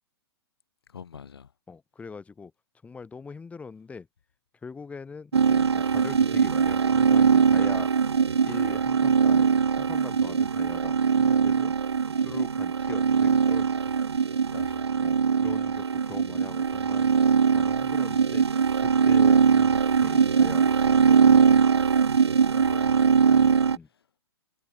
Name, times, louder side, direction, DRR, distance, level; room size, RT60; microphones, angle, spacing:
voice 1, 0.9-1.5 14.5-15.0 22.5-23.6 23.9-24.0, left 7 dB, 65° left, 3.4 m, -44 dB
voice 2, 1.7-2.5 2.8-4.1 4.6-7.9 8.4-11.7 12.2-13.8 15.0-17.1 17.5-18.5 18.8-21.8 23.7-23.9, left 5 dB, 10° left, 4.4 m, -42 dB
sound 1, 5.3-23.8, right 6 dB, 75° right, 0.6 m, -21 dB
figure-of-eight pair, 115°, 14 cm